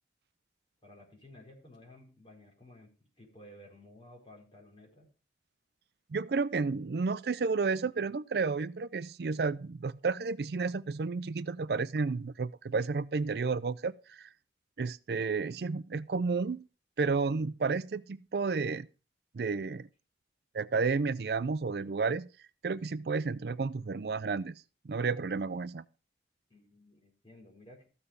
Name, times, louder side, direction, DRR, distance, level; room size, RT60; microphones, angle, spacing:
voice 1, 0.8-5.1 26.5-27.9, left 1 dB, 30° left, 4.8 m, -55 dB
voice 2, 6.1-14.3 14.8-16.7 17.0-18.9 19.3-19.9 20.5-22.3 22.6-24.5 24.9-25.8, right 4 dB, 60° right, 0.4 m, -31 dB
14.0 x 6.7 x 5.3 m
head